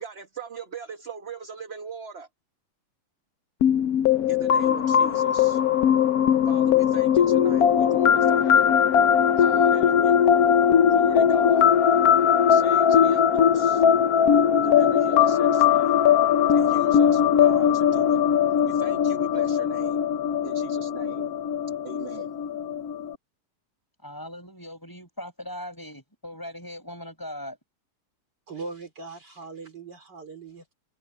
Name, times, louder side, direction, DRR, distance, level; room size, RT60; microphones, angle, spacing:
voice 1, 0.0-2.3 4.3-5.6 6.4-8.7 9.4-10.2 10.9-11.7 12.5-13.8 14.6-15.9 16.5-18.2 18.6-20.0 20.4-21.3 21.8-22.3, right 4 dB, 35° right, 1.4 m, -39 dB
sound 1, 3.6-23.1, left 8 dB, 65° left, 0.9 m, -20 dB
voice 2, 24.0-27.6, left 1 dB, 10° left, 6.4 m, -39 dB
voice 3, 28.5-30.7, right 4 dB, 50° right, 4.1 m, -40 dB
omnidirectional pair, 2.4 m